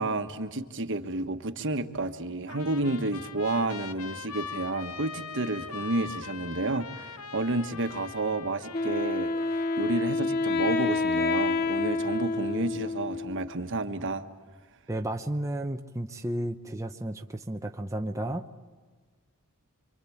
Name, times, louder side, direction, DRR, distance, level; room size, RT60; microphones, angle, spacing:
voice 1, 0.0-9.3 9.8-14.3, right 2 dB, 60° right, 8 dB, 1.4 m, -30 dB
Trumpet, 2.5-10.1, left 6 dB, 75° left, 1.0 m, -42 dB
Wind instrument woodwind instrument, 8.7-13.5, left 3 dB, 45° left, 0.9 m, -28 dB
voice 2, 14.9-18.5, right 1 dB, 15° right, 4 dB, 0.8 m, -33 dB
28.0 x 24.5 x 8.7 m, 1.4 s
head